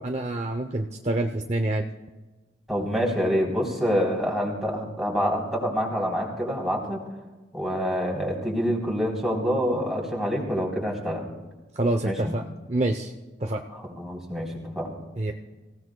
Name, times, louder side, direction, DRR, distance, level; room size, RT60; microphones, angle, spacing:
voice 1, 0.0-1.9 11.8-13.1 13.4-13.6 15.2-15.3, right 2 dB, 35° right, 4 dB, 0.6 m, -27 dB
voice 2, 2.7-7.0 7.5-11.3 12.0-12.3 13.7-14.9, equal, ahead, -2 dB, 3.4 m, -26 dB
25.5 x 16.5 x 2.3 m, 1.2 s
head